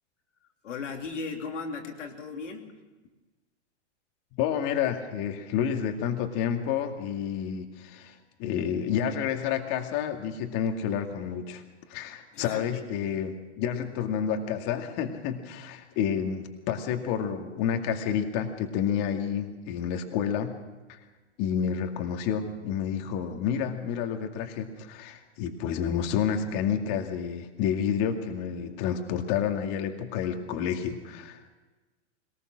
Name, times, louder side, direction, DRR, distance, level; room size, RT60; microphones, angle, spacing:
voice 1, 0.6-2.8 12.3-12.9 28.6-29.2, left 4 dB, 85° left, 3 dB, 3.2 m, -38 dB
voice 2, 4.4-11.6 11.9-20.6 20.9-21.0 21.4-31.4, left 8 dB, 45° left, 4 dB, 2.2 m, -29 dB
21.5 x 19.5 x 6.3 m, 1.2 s
hypercardioid pair, 115°, 35 cm